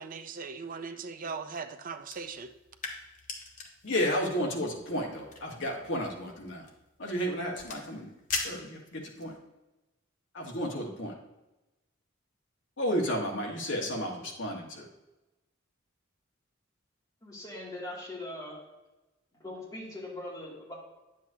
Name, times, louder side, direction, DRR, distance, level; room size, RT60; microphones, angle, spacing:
voice 1, 0.0-2.5, right 5 dB, 45° right, 9 dB, 0.5 m, -39 dB
sound 1, 2.0-9.4, left 4 dB, 40° left, 1.1 m, -42 dB
voice 2, 3.8-6.6 7.0-8.1 8.4-9.4 10.3-11.1 12.8-14.9, equal, 65° left, 0 dB, 1.4 m, -32 dB
voice 3, 17.2-18.6 19.4-20.7, left 1 dB, 20° left, -5 dB, 2.4 m, -41 dB
9.7 x 7.7 x 2.8 m, 1.0 s
head